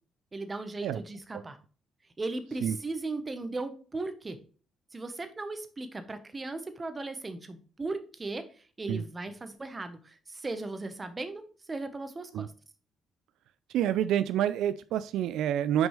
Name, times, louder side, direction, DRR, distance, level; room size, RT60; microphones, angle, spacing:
voice 1, 0.3-1.6 2.2-4.4 4.9-8.5 8.8-12.5, right 3 dB, 25° right, 9 dB, 1.1 m, -37 dB
voice 2, 13.7-15.9, right 10 dB, 85° right, 14 dB, 0.3 m, -28 dB
6.1 x 5.3 x 3.2 m, 0.39 s
cardioid pair, 90°, 0 cm